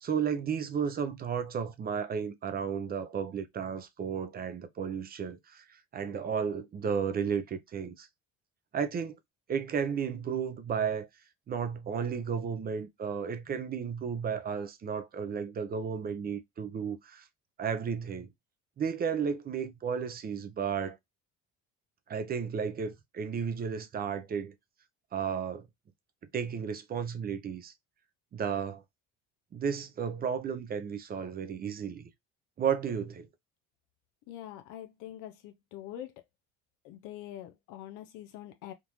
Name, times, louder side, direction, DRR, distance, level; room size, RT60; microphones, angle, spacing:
voice 1, 0.0-8.1 8.7-9.2 9.5-11.1 11.5-17.3 17.6-18.3 18.8-21.0 22.1-24.5 25.1-25.7 26.3-27.7 28.3-28.8 29.5-32.1 32.6-33.3, right 7 dB, 30° right, 0.5 m, -33 dB
voice 2, 34.3-36.2 36.8-38.7, left 12 dB, 85° left, 0.6 m, -44 dB
3.6 x 2.5 x 2.9 m
cardioid pair, 140°, 31 cm